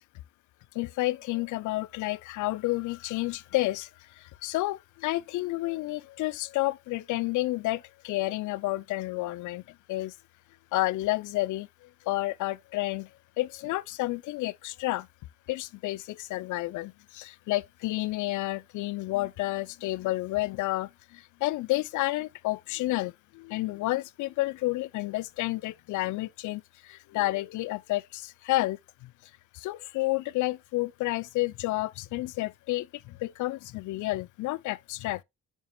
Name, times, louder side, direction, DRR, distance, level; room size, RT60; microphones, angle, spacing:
voice 1, 0.7-9.6 9.9-10.2 10.7-13.1 13.4-15.1 15.5-29.1 29.5-35.2, left 18 dB, 80° left, 0.5 m, -30 dB
9.1 x 5.7 x 2.2 m
cardioid pair, 90°, 30 cm